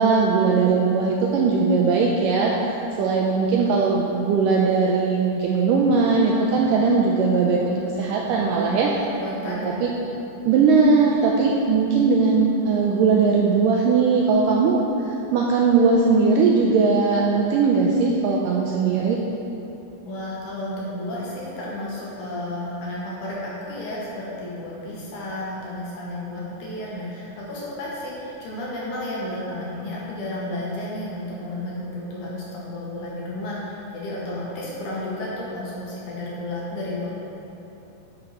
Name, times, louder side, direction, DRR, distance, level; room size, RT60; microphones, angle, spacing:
voice 1, 0.0-2.5 3.0-8.9 9.5-9.9 10.5-19.2, right 4 dB, 85° right, -2 dB, 1.9 m, -19 dB
voice 2, 8.7-9.8 20.1-37.1, left 1 dB, 60° left, -6 dB, 2.8 m, -32 dB
11.0 x 6.6 x 4.3 m, 2.9 s
omnidirectional pair, 4.4 m